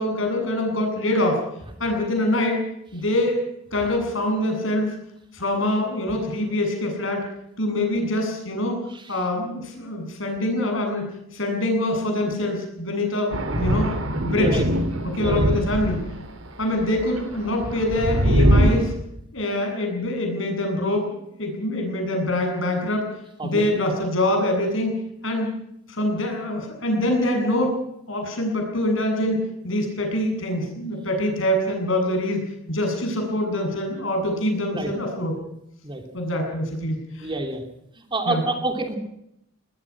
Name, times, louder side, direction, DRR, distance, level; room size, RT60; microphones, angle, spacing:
voice 1, 0.0-1.4 1.8-2.6 2.9-3.4 3.7-4.9 5.3-7.2 7.6-8.8 9.1-11.1 11.3-13.9 14.2-14.6 15.0-16.1 16.6-18.9 19.3-23.1 23.4-25.0 25.2-25.5 25.9-27.7 28.1-32.4 32.7-35.3 36.1-37.3 38.3-38.4, left 1 dB, 70° left, 3 dB, 8.0 m, -24 dB
Thunder, 13.3-16.3 16.8-18.8, equal, 80° right, 3.6 m, -22 dB
voice 2, 15.1-15.5 16.9-17.0 23.4-23.6 34.7-34.9 35.8-36.0 37.2-37.6 38.0-39.0, right 2 dB, 25° right, 4 dB, 3.1 m, -28 dB
21.5 x 20.0 x 6.1 m, 0.78 s
head